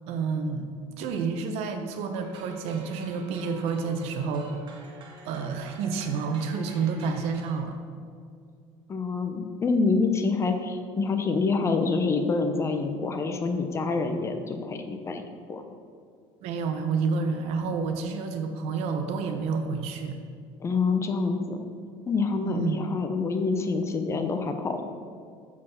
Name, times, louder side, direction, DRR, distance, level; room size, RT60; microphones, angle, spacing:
voice 1, 0.1-0.7 1.0-4.5 5.2-7.8 16.4-20.2 22.4-22.8, right 5 dB, 70° right, 6 dB, 1.1 m, -29 dB
sound 1, 2.2-7.6, right 2 dB, 45° right, 1.8 m, -48 dB
voice 2, 8.9-15.6 20.6-21.6 22.1-24.8, left 4 dB, 25° left, 6 dB, 0.8 m, -27 dB
7.3 x 6.2 x 5.9 m, 2.3 s
cardioid pair, 135°, 11 cm